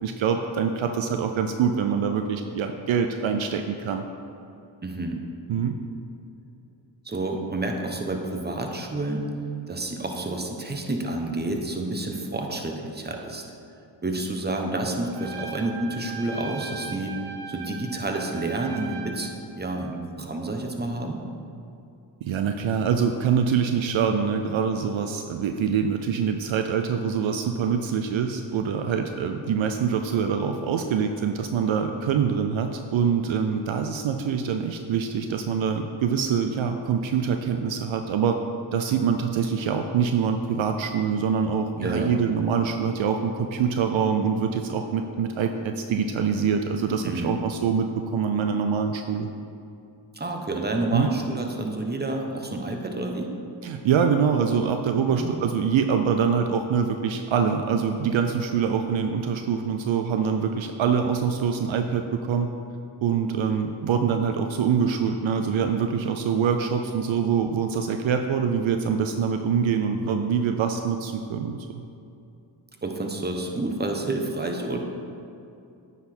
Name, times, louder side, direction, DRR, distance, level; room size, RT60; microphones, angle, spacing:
voice 1, 0.0-4.0 5.5-5.8 22.2-38.4 38.7-47.9 48.1-49.3 50.9-51.1 53.6-62.5 63.0-71.8, right 6 dB, 65° right, 6 dB, 0.6 m, -24 dB
voice 2, 4.8-5.2 7.0-9.3 9.7-13.4 14.0-17.2 17.5-21.2 41.8-42.1 47.0-47.4 50.1-53.3 55.1-55.4 72.8-74.8, right 2 dB, 20° right, 2 dB, 1.0 m, -29 dB
Trumpet, 15.1-19.4, right 5 dB, 50° right, 1.0 m, -39 dB
9.3 x 4.1 x 4.5 m, 2.6 s
cardioid pair, 50°, 50 cm